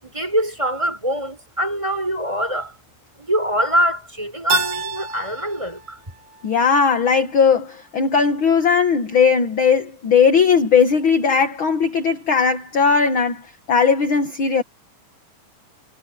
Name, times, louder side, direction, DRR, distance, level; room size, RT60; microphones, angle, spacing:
voice 1, 0.0-2.7 3.2-6.0, equal, 10° right, 6.0 m, -23 dB
Keyboard (musical), 4.5-7.3, right 8 dB, 70° right, 3.2 m, -30 dB
voice 2, 6.4-14.6, left 6 dB, 45° left, 1.8 m, -18 dB
omnidirectional pair, 4.0 m